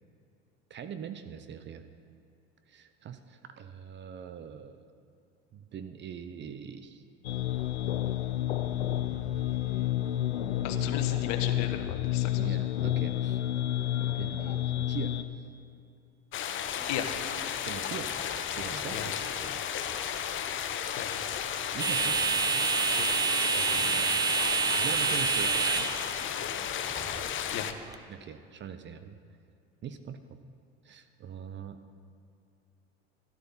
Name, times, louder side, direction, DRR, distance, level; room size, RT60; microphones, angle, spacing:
voice 1, 0.7-1.8 2.7-4.8 5.5-7.0 9.1-10.1 12.4-13.4 14.1-15.2 17.6-18.1 18.6-19.2 21.7-23.1 23.6-24.4 24.8-25.9 28.1-29.2 29.8-30.2 30.8-31.8, right 7 dB, 35° right, 9 dB, 0.7 m, -42 dB
sound 1, 7.2-15.2, left 13 dB, 90° left, 0.6 m, -30 dB
voice 2, 10.6-12.6 16.8-17.1 18.9-19.1 21.0-21.1 23.0-23.2 27.3-27.7, left 9 dB, 55° left, 7 dB, 1.2 m, -36 dB
sound 2, 16.3-27.7, left 9 dB, 40° left, 0.8 m, -34 dB
sound 3, 16.6-28.0, right 5 dB, 15° right, 0.4 m, -31 dB
13.0 x 11.5 x 4.1 m, 2.5 s
hypercardioid pair, 80°, 32 cm